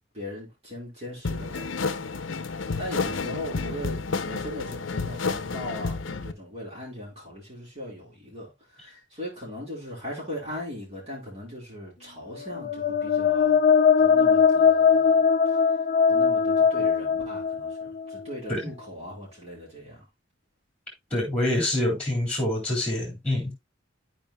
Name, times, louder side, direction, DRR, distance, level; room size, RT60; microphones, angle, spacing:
voice 1, 0.1-13.6 14.0-15.2 16.1-20.0, left 1 dB, 35° right, 4.7 m, -39 dB
sound 1, 1.2-6.3, left 4 dB, 85° left, 0.7 m, -30 dB
sound 2, 12.4-18.2, left 6 dB, 45° left, 0.5 m, -21 dB
voice 2, 21.1-23.5, left 1 dB, 5° left, 3.7 m, -26 dB
14.0 x 4.9 x 2.2 m
head